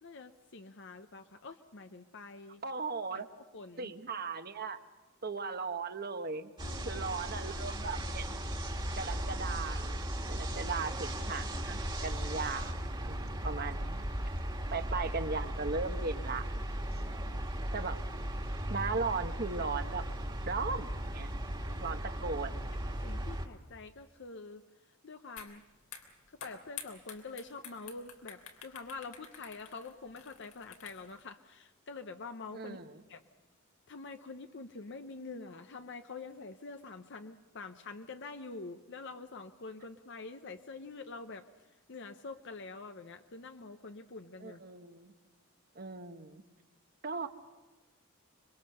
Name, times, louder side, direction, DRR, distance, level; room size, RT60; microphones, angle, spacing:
voice 1, 0.0-2.6 3.1-3.2 3.5-3.9 6.6-7.1 16.8-17.4 21.6-21.8 23.0-24.6 25.0-25.6 26.4-32.8 33.1-33.2 33.9-41.5 41.9-44.6, left 3 dB, 55° left, 7 dB, 0.8 m, -46 dB
voice 2, 2.6-3.3 3.8-4.8 5.2-6.5 6.8-8.3 8.9-12.8 13.0-14.0 14.7-16.6 17.7-18.0 18.7-20.0 20.4-21.3 21.8-22.6 32.5-33.0 44.4-45.1 45.7-46.4 47.0-47.3, right 4 dB, 45° right, 8 dB, 1.2 m, -37 dB
sound 1, 6.6-23.5, right 1 dB, 20° right, 1.8 m, -37 dB
sound 2, 25.4-25.5 25.8-31.2, left 8 dB, 90° left, 3.3 m, -49 dB
25.5 x 23.0 x 6.6 m, 1.2 s
head